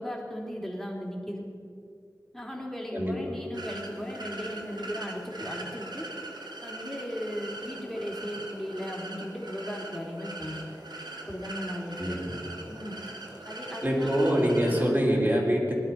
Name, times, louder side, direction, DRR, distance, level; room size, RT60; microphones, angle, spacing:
voice 1, 0.0-1.4 2.3-6.0 6.6-10.6 11.3-12.2 12.7-12.9 13.4-14.2, equal, 5° left, -2 dB, 3.3 m, -36 dB
sound 1, 3.5-14.9, right 2 dB, 90° right, 1.7 m, -41 dB
voice 2, 12.0-12.4 13.8-15.7, equal, 30° right, -3 dB, 4.0 m, -25 dB
19.0 x 11.5 x 5.8 m, 2.4 s
wide cardioid pair, 50°, 7 cm